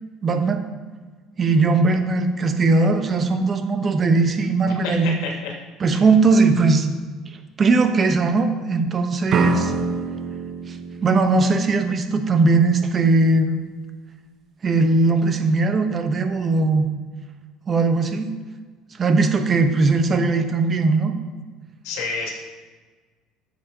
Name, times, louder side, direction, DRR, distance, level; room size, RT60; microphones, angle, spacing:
voice 1, 0.2-0.6 1.4-5.1 5.8-6.9 7.6-9.7 10.7-10.8 11.0-13.6 14.6-16.9 17.7-18.3 19.0-21.1, right 3 dB, 35° right, 7 dB, 1.0 m, -19 dB
voice 2, 4.6-5.5 21.8-22.3, left 4 dB, 85° left, -2 dB, 2.6 m, -29 dB
sound 1, 9.3-12.2, right 4 dB, 50° right, 0.8 m, -25 dB
14.0 x 7.3 x 2.9 m, 1.4 s
cardioid pair, 110°, 0 cm